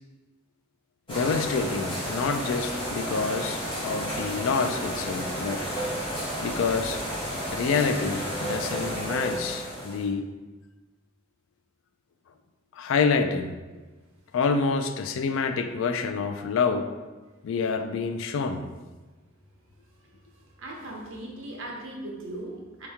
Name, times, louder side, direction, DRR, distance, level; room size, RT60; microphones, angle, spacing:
voice 1, 1.1-5.7 6.3-7.0 7.5-10.3 12.7-13.6 14.3-16.9 17.4-18.7, left 5 dB, 65° left, 8 dB, 0.3 m, -27 dB
sound 1, 1.1-10.1, equal, 25° left, 1.1 m, -32 dB
voice 2, 20.6-22.9, right 1 dB, 70° right, -1 dB, 0.9 m, -38 dB
4.4 x 2.9 x 3.4 m, 1.2 s
head